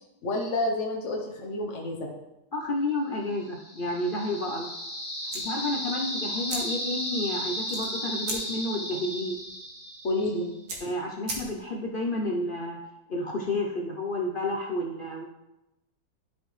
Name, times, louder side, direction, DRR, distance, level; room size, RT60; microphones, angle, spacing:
voice 1, 0.2-2.1 10.0-10.5, left 2 dB, 50° left, 0 dB, 1.2 m, -29 dB
voice 2, 2.5-4.7 5.3-9.4 10.8-12.8 13.1-15.2, left 1 dB, 65° left, 0 dB, 0.5 m, -30 dB
sound 1, 3.5-10.4, equal, 10° left, 1.9 m, -34 dB
sound 2, 5.2-11.9, right 2 dB, 70° right, 1.8 m, -40 dB
11.0 x 5.2 x 3.2 m, 0.92 s
omnidirectional pair, 1.8 m